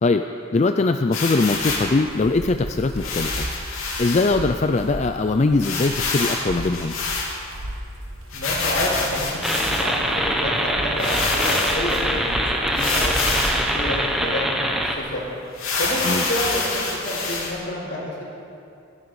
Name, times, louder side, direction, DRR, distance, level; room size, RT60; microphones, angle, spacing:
voice 1, 0.5-3.5 4.0-6.9 16.0-16.2, left 3 dB, 35° left, 7 dB, 0.4 m, -21 dB
sound 1, 1.1-1.9 3.0-4.3 4.8-4.9 5.1-5.2 5.6-7.6 8.3-10.0 10.6-10.7 11.0-12.0 12.7-13.7 14.2-14.3 14.6-14.8 15.5-17.5, left 3 dB, 85° left, 3.2 m, -26 dB
sound 2, 2.0-14.3, right 1 dB, 75° right, 1.3 m, -35 dB
voice 2, 8.3-15.2 15.8-18.2, left 1 dB, 55° left, -3 dB, 4.6 m, -29 dB
sound 3, 9.4-15.0, equal, ahead, 1.0 m, -24 dB
25.5 x 11.0 x 4.9 m, 2.5 s
head